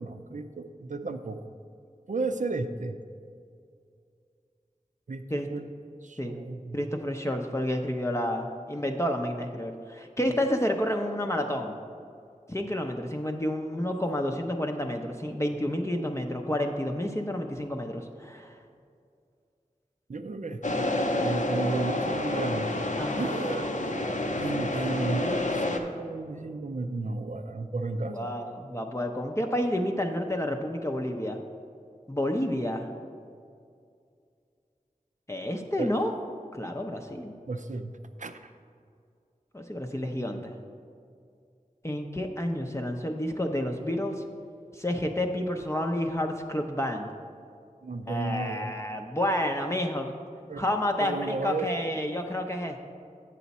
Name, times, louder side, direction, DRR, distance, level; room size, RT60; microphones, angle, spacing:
voice 1, 0.0-1.4 2.1-3.0 5.1-5.2 5.5-5.7 6.0-6.8 20.1-20.8 21.2-22.7 23.2-23.7 24.3-28.2 35.8-35.9 37.5-38.5 47.8-48.7 50.5-50.7 51.0-51.7, right 3 dB, 65° right, 8 dB, 0.5 m, -33 dB
voice 2, 6.7-11.8 12.5-18.5 23.0-23.3 28.1-31.4 32.1-32.9 35.3-36.1 36.5-37.3 39.5-40.5 41.8-44.2 44.7-47.1 48.1-50.1 50.6-52.8, left 1 dB, 20° left, 3 dB, 0.6 m, -30 dB
sound 1, 20.6-25.8, left 1 dB, 65° left, 0.7 m, -29 dB
8.3 x 6.9 x 4.1 m, 2.3 s
wide cardioid pair, 45°, 14 cm